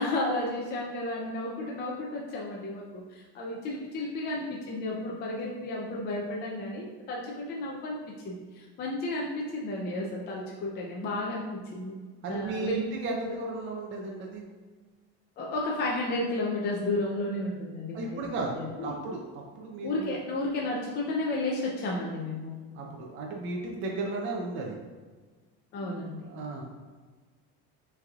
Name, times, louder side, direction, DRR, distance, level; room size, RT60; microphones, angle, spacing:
voice 1, 0.0-8.0 8.2-11.4 11.7-11.9 12.3-12.8 13.2-13.3 15.4-18.3 18.5-18.9 19.8-22.6 25.7-26.3, left 2 dB, 35° left, -3 dB, 0.5 m, -32 dB
voice 2, 12.2-14.4 17.9-20.2 22.7-24.8 25.8-26.6, right 3 dB, 40° right, -1 dB, 0.6 m, -35 dB
6.1 x 3.3 x 2.4 m, 1.4 s
cardioid pair, 165°, 30 cm